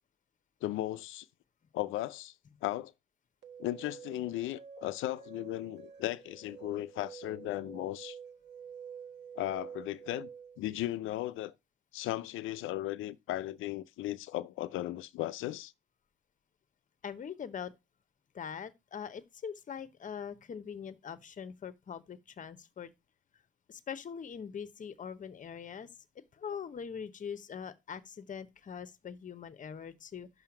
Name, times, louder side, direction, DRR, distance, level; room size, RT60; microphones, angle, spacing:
voice 1, 0.6-1.3 1.7-2.3 2.6-2.9 3.6-8.2 9.4-10.3 10.6-11.5 11.9-15.7, left 15 dB, 85° left, 0.5 m, -36 dB
sound 1, 3.4-10.6, right 7 dB, 60° right, 1.5 m, -48 dB
voice 2, 17.0-17.7 18.3-22.9 23.7-25.9 26.3-30.3, left 7 dB, 40° left, 0.9 m, -42 dB
5.7 x 5.6 x 5.8 m
cardioid pair, 90°, 20 cm